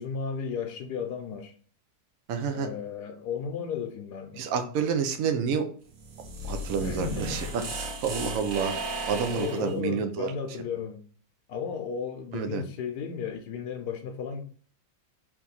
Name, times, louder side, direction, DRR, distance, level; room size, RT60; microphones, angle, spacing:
voice 1, 0.0-1.5 2.5-4.5 6.8-7.7 9.2-11.0 11.5-14.4, left 6 dB, 70° left, 1.1 m, -34 dB
voice 2, 2.3-2.7 4.4-5.7 6.5-7.5 7.8-8.7 9.1-10.3 12.3-12.6, right 6 dB, 65° right, 0.9 m, -29 dB
sound 1, 5.9-9.7, right 2 dB, 80° right, 1.5 m, -35 dB
3.5 x 3.0 x 4.0 m
omnidirectional pair, 1.9 m